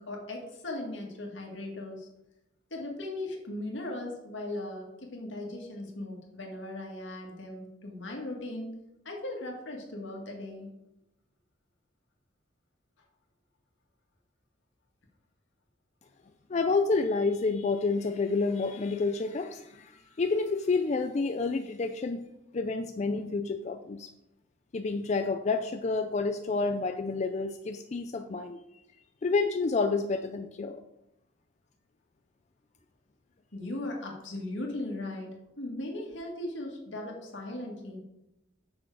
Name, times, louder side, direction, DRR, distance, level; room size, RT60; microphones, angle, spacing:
voice 1, 0.0-2.1 2.7-8.8 9.1-10.7 33.5-38.0, left 1 dB, 75° left, 0 dB, 1.9 m, -38 dB
voice 2, 16.5-22.3 22.5-24.1 24.7-28.6 29.2-30.8, left 3 dB, 35° left, 7 dB, 0.4 m, -29 dB
6.9 x 6.2 x 4.9 m, 0.89 s
head